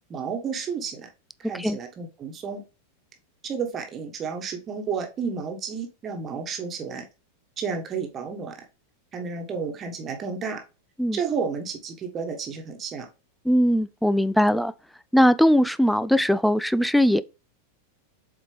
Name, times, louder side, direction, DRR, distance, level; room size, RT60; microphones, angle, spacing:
voice 1, 0.1-1.1 1.4-2.6 3.4-7.1 7.6-8.5 9.1-10.6 11.1-13.1, right 5 dB, 25° right, 1.4 m, -31 dB
voice 2, 13.5-14.7 15.1-17.2, equal, ahead, 0.4 m, -20 dB
7.5 x 4.4 x 3.3 m
figure-of-eight pair, 90°, 0 cm